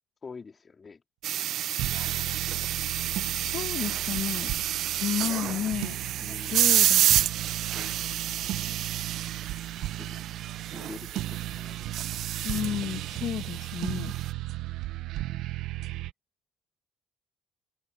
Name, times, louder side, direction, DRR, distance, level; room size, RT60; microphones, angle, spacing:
voice 1, 0.2-1.0 1.8-2.7 3.5-3.9 6.2-6.6 7.7-7.9 9.8-10.2 10.7-12.8, left 5 dB, 30° left, 2.5 m, -47 dB
sound 1, 1.2-14.3, right 12 dB, 65° right, 0.3 m, -29 dB
sound 2, 1.7-16.1, right 15 dB, 80° right, 0.7 m, -36 dB
voice 2, 3.3-4.5 5.0-6.0 6.5-7.1 12.4-14.1, left 10 dB, 65° left, 1.5 m, -32 dB
cardioid pair, 135°, 0 cm